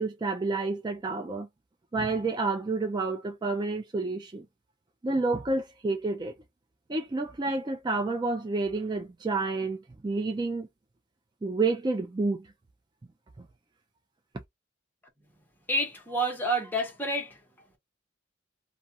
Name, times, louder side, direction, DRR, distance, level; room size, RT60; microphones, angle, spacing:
voice 1, 0.0-1.5 1.9-4.4 5.0-6.3 6.9-9.8 10.0-10.7 11.4-12.5, right 3 dB, 20° right, 0.4 m, -29 dB
voice 2, 15.7-17.8, right 1 dB, 10° left, 0.9 m, -29 dB
2.3 x 2.3 x 2.8 m
head